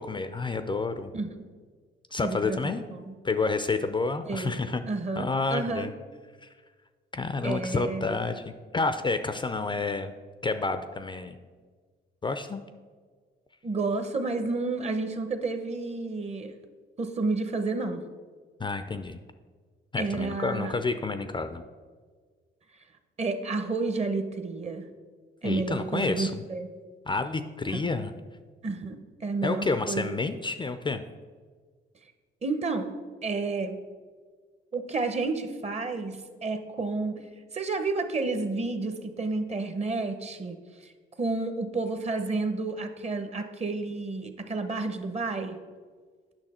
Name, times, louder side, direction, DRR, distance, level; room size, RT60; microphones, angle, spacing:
voice 1, 0.0-1.1 2.1-2.8 3.2-4.8 5.2-5.9 6.4-6.5 7.1-10.1 10.4-11.4 12.2-12.6 18.6-19.2 19.9-21.6 25.4-26.4 27.1-28.1 29.4-31.0, left 3 dB, 25° left, 10 dB, 0.4 m, -29 dB
voice 2, 2.2-2.6 2.9-3.2 4.2-4.6 4.9-5.9 7.4-8.2 13.6-16.5 17.0-18.0 20.0-20.7 23.2-24.9 25.4-26.7 27.7-27.8 28.6-30.2 32.4-32.9 33.2-33.8 34.7-37.2 37.5-40.6 40.8-40.9 41.2-45.6, right 3 dB, 35° right, 8 dB, 0.8 m, -30 dB
8.9 x 5.9 x 4.2 m, 1.5 s
cardioid pair, 90°, 20 cm